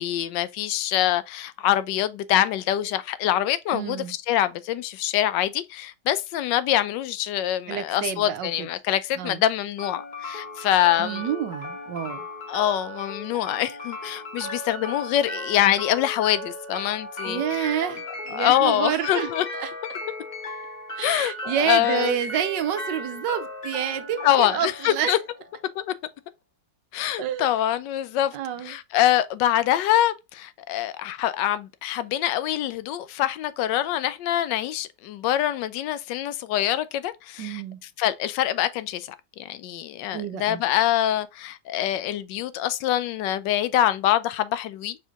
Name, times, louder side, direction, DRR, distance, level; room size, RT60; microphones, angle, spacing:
voice 1, 0.0-11.2 12.5-17.9 18.3-19.4 21.0-22.2 24.2-25.2 25.8-25.9 26.9-28.4 28.6-37.6 38.0-39.1 39.4-45.0, left 12 dB, 85° left, 1.2 m, -25 dB
voice 2, 3.7-4.1 7.7-8.7 9.1-9.4 11.0-12.2 17.3-19.3 19.6-19.7 21.0-25.2 27.2-27.5 28.3-28.7 37.4-37.8 40.1-40.6, right 9 dB, 80° right, 1.4 m, -28 dB
sound 1, 9.8-25.8, left 1 dB, 35° left, 0.8 m, -36 dB
4.5 x 3.3 x 3.5 m
omnidirectional pair, 1.9 m